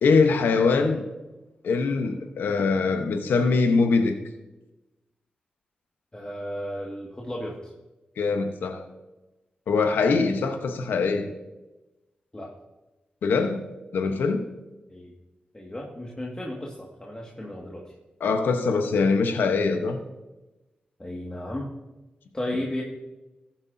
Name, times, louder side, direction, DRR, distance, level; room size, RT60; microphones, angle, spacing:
voice 1, 0.0-1.0 1.6-4.2 8.2-8.8 9.7-11.3 13.2-13.6 13.9-14.4 18.2-20.0, left 4 dB, 85° left, 7 dB, 1.0 m, -23 dB
voice 2, 6.1-7.7 12.3-12.5 14.9-15.1 15.5-17.9 21.0-21.7 22.3-22.8, left 1 dB, 25° left, -2 dB, 2.0 m, -34 dB
14.5 x 8.8 x 2.8 m, 1.0 s
supercardioid pair, 45°, 3 cm